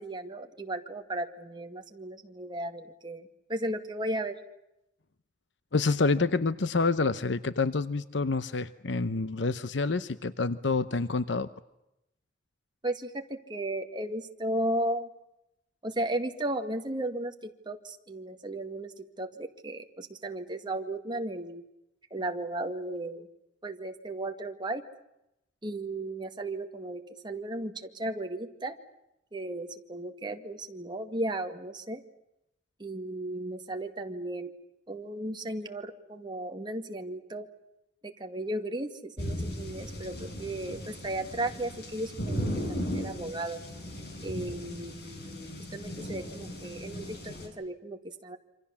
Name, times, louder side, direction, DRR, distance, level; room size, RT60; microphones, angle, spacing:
voice 1, 0.0-4.4 12.8-15.1 15.8-21.6 22.1-23.3 23.6-24.8 25.6-28.8 29.3-32.0 32.8-34.5 34.9-37.5 38.0-42.4 42.7-43.6 44.2-48.4, right 1 dB, 25° right, 4 dB, 2.1 m, -35 dB
voice 2, 5.7-11.5, left 3 dB, 80° left, 14 dB, 0.9 m, -28 dB
sound 1, 39.2-47.5, equal, 60° left, 6.8 m, -37 dB
27.5 x 25.5 x 7.2 m, 0.87 s
head